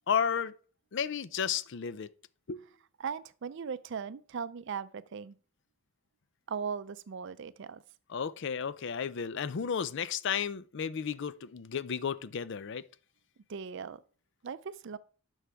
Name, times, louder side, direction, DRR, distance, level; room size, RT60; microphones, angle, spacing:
voice 1, 0.1-0.5 0.9-2.1 2.5-2.6 8.1-12.8, left 7 dB, 60° left, 0.5 m, -33 dB
voice 2, 3.0-5.4 6.5-7.8 13.5-14.0 14.4-15.0, right 6 dB, 60° right, 0.5 m, -38 dB
11.0 x 6.3 x 3.5 m
head